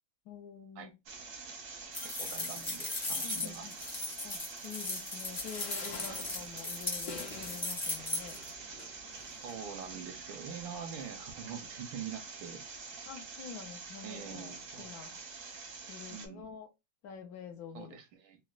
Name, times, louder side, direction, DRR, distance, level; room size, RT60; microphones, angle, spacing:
voice 1, 0.3-0.9 3.2-3.7 4.2-8.4 13.0-15.2 15.9-16.7 17.0-18.0, left 7 dB, 90° left, 0.8 m, -47 dB
sound 1, 1.1-16.3, right 4 dB, 65° right, 0.8 m, -46 dB
sound 2, 1.9-8.5, left 2 dB, 40° left, 0.4 m, -37 dB
voice 2, 2.2-3.9 6.1-6.2 9.4-12.6 14.0-14.9 16.1-16.4 17.7-18.4, right 7 dB, 85° right, 1.4 m, -44 dB
sound 3, 5.4-9.9 10.6-10.7 10.9-11.0, left 4 dB, 65° left, 1.2 m, -49 dB
3.9 x 2.1 x 2.3 m
omnidirectional pair, 2.2 m